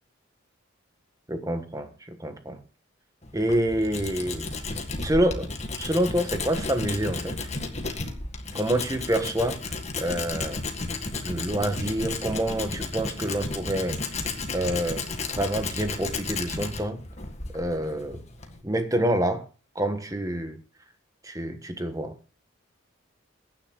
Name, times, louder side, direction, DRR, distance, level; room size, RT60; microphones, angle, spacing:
voice 1, 1.3-2.6 3.3-4.5 5.0-5.5 5.8-7.4 8.5-10.6 11.2-14.0 14.5-17.0 17.5-18.2 18.6-19.4 19.7-20.6 21.2-22.1, right 1 dB, 15° right, 1.3 m, -27 dB
Tools, 3.2-18.6, left 3 dB, 35° left, 1.9 m, -33 dB
22.5 x 10.0 x 2.3 m
head